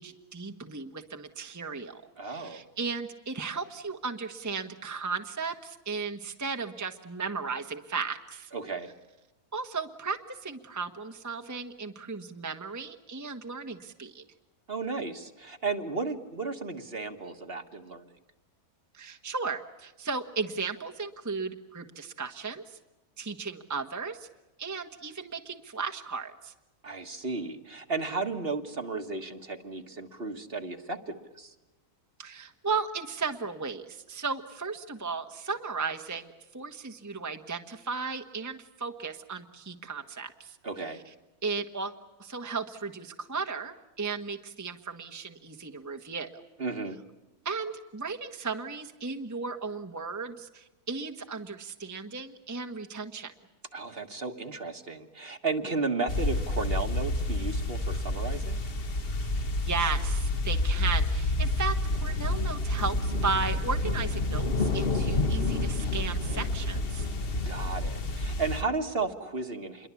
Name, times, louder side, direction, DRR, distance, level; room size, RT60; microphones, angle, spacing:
voice 1, 0.0-8.5 9.5-14.2 18.9-22.6 23.2-24.3 24.6-26.5 32.2-40.6 41.4-41.9 42.2-46.4 47.4-53.3 59.6-67.1, right 4 dB, 10° right, 5 dB, 1.2 m, -35 dB
voice 2, 2.2-2.6 8.5-8.9 14.7-18.1 26.8-31.5 40.6-41.0 46.6-47.0 53.7-58.6 67.5-69.9, right 3 dB, 40° right, 7 dB, 1.7 m, -34 dB
sound 1, 56.1-68.6, left 2 dB, 40° left, 1.3 m, -29 dB
27.5 x 23.0 x 8.3 m, 1.0 s
omnidirectional pair, 1.6 m